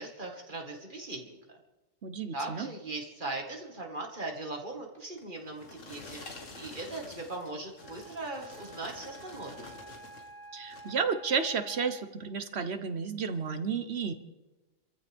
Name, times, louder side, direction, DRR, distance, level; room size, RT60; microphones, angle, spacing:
voice 1, 0.0-1.6 2.3-6.2 6.5-9.6, right 2 dB, 40° right, 1 dB, 2.0 m, -39 dB
voice 2, 2.0-2.7 10.5-14.1, right 5 dB, 60° right, 10 dB, 1.2 m, -32 dB
sound 1, 5.2-10.3 10.6-11.1 11.6-11.8, left 2 dB, 80° left, 2.2 m, -48 dB
Wind instrument woodwind instrument, 7.8-12.4, right 2 dB, 85° right, 3.0 m, -50 dB
27.5 x 14.5 x 3.6 m, 1.1 s
omnidirectional pair, 1.3 m